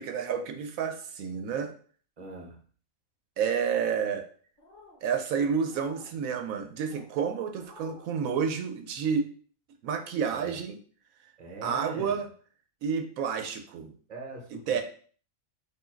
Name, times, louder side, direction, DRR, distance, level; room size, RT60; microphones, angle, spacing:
voice 1, 0.0-1.7 3.4-4.2 5.0-9.3 9.8-10.8 11.6-12.3 12.8-13.9 14.7-14.8, right 6 dB, 85° right, 6 dB, 1.1 m, -30 dB
voice 2, 2.2-2.6 10.3-10.6 11.4-12.2 14.1-14.8, right 2 dB, 35° right, 1 dB, 0.9 m, -42 dB
sound 1, 3.5-4.1 4.6-5.0 5.6-6.1 6.7-7.1 7.5-8.1, left 2 dB, 40° left, 1.1 m, -53 dB
4.5 x 2.6 x 4.4 m, 0.44 s
omnidirectional pair, 1.4 m